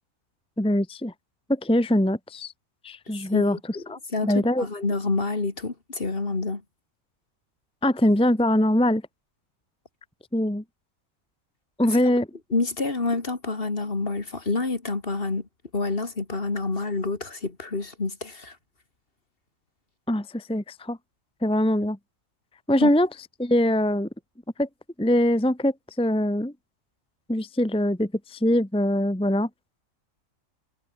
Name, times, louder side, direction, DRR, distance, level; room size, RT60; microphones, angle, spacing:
voice 1, 0.6-1.1 1.5-2.5 2.8-4.7 7.8-9.0 10.3-10.6 11.8-12.3 20.1-21.0 21.4-22.0 22.7-23.1 23.4-24.1 24.6-24.7 25.0-26.5 27.3-29.5, left 1 dB, 5° left, 1.1 m, -23 dB
voice 2, 3.3-6.6 11.9-12.0 12.5-15.5 15.7-18.6 22.8-22.9, left 3 dB, 45° left, 2.6 m, -28 dB
omnidirectional pair, 1.4 m